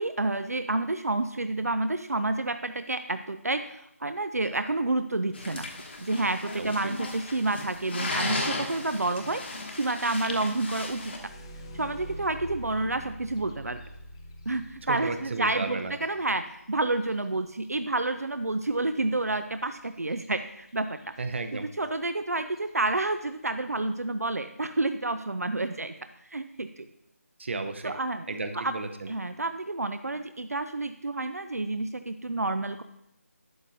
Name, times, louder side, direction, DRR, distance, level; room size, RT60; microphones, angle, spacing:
voice 1, 0.0-5.7 6.0-9.4 9.7-11.1 11.7-13.8 14.5-21.0 21.5-26.0 26.3-26.9 27.8-28.3 28.5-28.8 29.1-32.8, right 2 dB, 75° right, 10 dB, 0.6 m, -29 dB
sound 1, 5.3-11.2, left 2 dB, 45° left, 1.2 m, -35 dB
sound 2, 10.4-18.0 20.1-20.3 20.7-21.2 21.8-21.9 22.5-22.8, equal, 20° left, 0.6 m, -46 dB
voice 2, 14.9-15.9 21.2-21.7 27.4-27.9 28.3-29.1, right 3 dB, 50° right, 7 dB, 0.8 m, -33 dB
11.5 x 8.2 x 2.6 m, 0.79 s
figure-of-eight pair, 160°, 8 cm